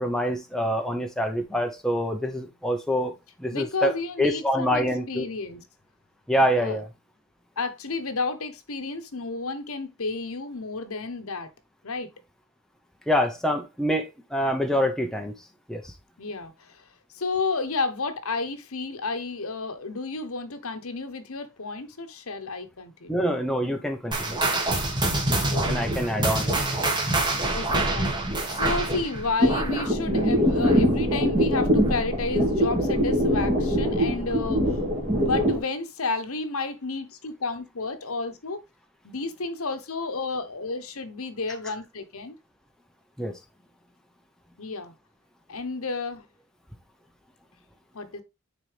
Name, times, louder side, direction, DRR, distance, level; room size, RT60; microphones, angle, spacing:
voice 1, 0.0-3.1 3.4-3.9 4.2-5.3 6.3-6.9 13.1-15.3 15.7-15.8 23.1-24.4 25.7-26.5 43.2-43.3, equal, 5° left, 0.8 m, -25 dB
voice 2, 3.5-5.6 6.6-6.8 7.6-11.5 11.8-12.1 16.2-16.7 17.1-23.3 25.5-26.2 26.5-26.6 27.5-28.1 28.5-34.8 35.0-38.6 39.0-42.3 44.6-44.9 45.5-46.2 47.9-48.2, left 3 dB, 70° left, 1.1 m, -31 dB
sound 1, 24.1-31.0 31.2-31.6 32.1-32.2 33.0-33.1, right 2 dB, 20° right, 1.5 m, -26 dB
sound 2, 29.4-35.6, equal, 35° right, 2.4 m, -23 dB
9.4 x 4.1 x 3.3 m
head